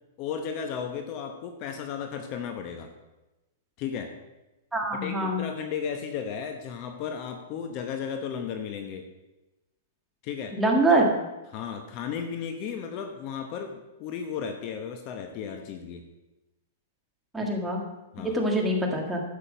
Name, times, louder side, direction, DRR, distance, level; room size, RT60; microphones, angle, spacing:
voice 1, 0.2-2.9 3.8-4.1 4.9-9.0 10.2-10.6 10.9-11.0 11.5-16.0 17.4-17.5 18.1-18.4, left 7 dB, 35° left, 6 dB, 0.9 m, -34 dB
voice 2, 4.7-5.4 10.5-11.1 17.3-17.8 18.2-19.2, right 1 dB, 5° right, 0 dB, 1.7 m, -24 dB
11.5 x 7.5 x 5.1 m, 1.0 s
hypercardioid pair, 150°, 0 cm